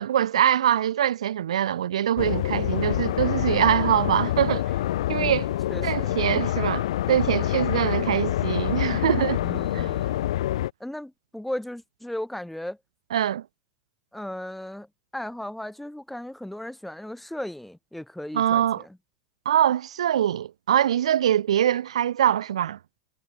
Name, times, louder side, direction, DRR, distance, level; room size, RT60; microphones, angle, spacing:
voice 1, 0.0-4.7 5.1-5.5 5.8-9.4 13.1-13.4 18.3-18.8 19.5-22.8, right 10 dB, 75° right, 0.6 m, -23 dB
sound 1, 2.2-10.7, left 13 dB, 70° left, 0.8 m, -26 dB
voice 2, 5.2-6.2 9.4-10.2 10.8-12.8 14.1-14.9 15.1-19.0, left 1 dB, 5° left, 2.9 m, -36 dB
hypercardioid pair, 85°, 3 cm